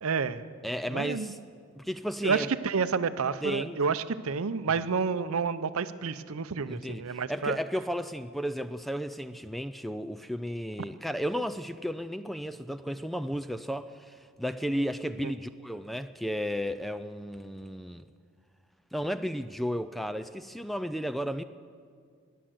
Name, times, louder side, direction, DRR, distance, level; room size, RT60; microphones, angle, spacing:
voice 1, 0.0-0.4 0.9-1.3 2.2-7.6 15.2-15.3, right 5 dB, 75° right, 13 dB, 0.6 m, -29 dB
voice 2, 0.6-1.4 1.8-2.5 3.4-3.8 6.7-18.1 18.9-21.4, equal, ahead, 12 dB, 0.3 m, -33 dB
18.0 x 10.0 x 7.7 m, 2.1 s
head